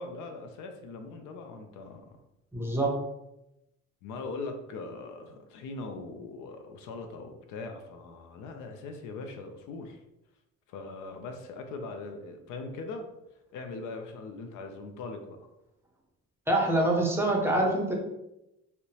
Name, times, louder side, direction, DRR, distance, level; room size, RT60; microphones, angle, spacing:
voice 1, 0.0-2.2 4.0-10.0 10.7-13.1 13.5-15.4, left 3 dB, 85° left, 5 dB, 0.5 m, -40 dB
voice 2, 2.5-2.9 16.5-17.9, right 1 dB, 10° right, -1 dB, 0.6 m, -25 dB
2.7 x 2.1 x 2.7 m, 0.89 s
cardioid pair, 90°, 30 cm